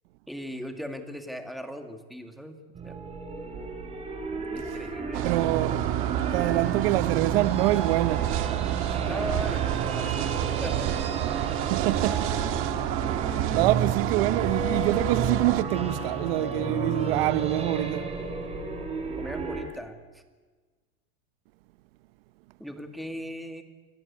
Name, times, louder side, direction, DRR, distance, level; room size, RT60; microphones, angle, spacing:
voice 1, 0.3-2.6 2.8-3.0 4.5-5.3 6.5-6.8 9.0-10.2 10.6-10.9 19.2-20.2 22.6-23.6, equal, ahead, 2.1 m, -38 dB
sound 1, 2.8-19.6, right 4 dB, 20° right, 4.3 m, -32 dB
sound 2, 5.1-15.6, right 13 dB, 40° right, 1.6 m, -29 dB
voice 2, 5.2-5.8 6.3-8.3 11.7-12.3 13.0-18.1, right 18 dB, 65° right, 0.9 m, -26 dB
29.0 x 21.5 x 8.6 m
supercardioid pair, 160°, 32 cm